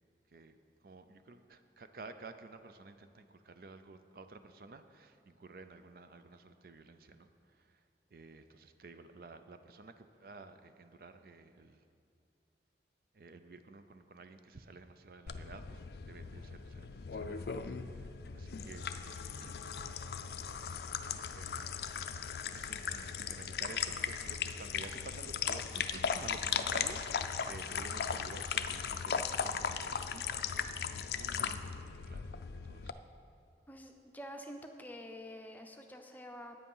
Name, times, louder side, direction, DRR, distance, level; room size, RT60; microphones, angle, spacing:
voice 1, 0.3-7.8 8.1-11.8 13.1-19.1 19.4-19.7 21.3-21.7 22.2-32.9, right 3 dB, 55° right, 9 dB, 0.5 m, -52 dB
sound 1, 15.3-32.9, left 6 dB, 65° left, 0.4 m, -38 dB
voice 2, 33.7-36.6, equal, 10° left, 4 dB, 0.6 m, -48 dB
9.5 x 8.5 x 5.5 m, 2.5 s
head